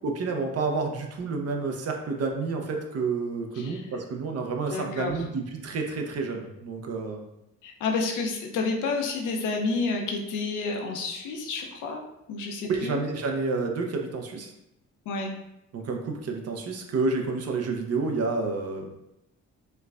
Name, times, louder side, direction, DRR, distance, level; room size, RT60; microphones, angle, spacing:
voice 1, 0.0-7.2 12.7-14.5 15.7-18.9, right 4 dB, 55° right, 3 dB, 0.7 m, -29 dB
voice 2, 4.7-5.1 7.6-12.0 12.3-13.0 15.1-15.3, left 4 dB, 85° left, 2 dB, 0.6 m, -30 dB
4.4 x 2.2 x 2.4 m, 0.84 s
cardioid pair, 90°, 30 cm